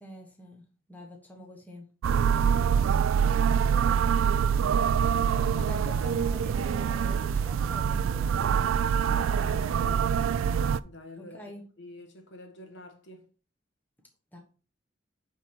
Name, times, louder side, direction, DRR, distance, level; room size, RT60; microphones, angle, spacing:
voice 1, 0.0-1.9 3.2-3.6 5.3-9.9 11.2-11.6 14.3-14.4, left 1 dB, 10° left, 1.2 m, -46 dB
sound 1, 2.0-10.8, right 7 dB, 85° right, 0.3 m, -25 dB
voice 2, 2.7-3.3 3.8-4.2 9.2-10.1 10.8-11.4 11.8-13.3, left 2 dB, 60° left, 1.3 m, -48 dB
8.2 x 3.7 x 4.3 m
head